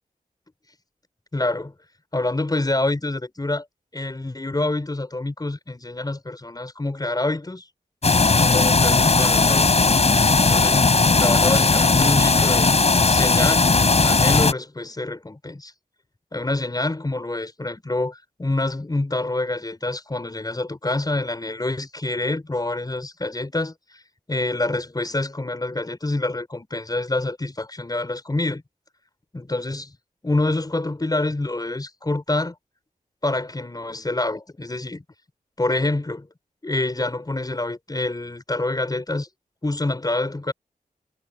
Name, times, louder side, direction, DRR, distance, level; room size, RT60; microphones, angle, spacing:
voice 1, 1.3-1.7 2.1-3.7 3.9-7.7 8.2-9.7 10.4-10.9 11.2-12.7 13.1-15.7 16.3-24.0 24.3-28.6 29.3-29.9 30.2-32.5 33.2-35.0 35.6-36.3 36.6-39.3 39.6-40.5, left 2 dB, 25° left, 5.7 m, -26 dB
sound 1, 8.0-14.5, left 3 dB, 50° left, 5.0 m, -17 dB
wide cardioid pair, 80°, 14 cm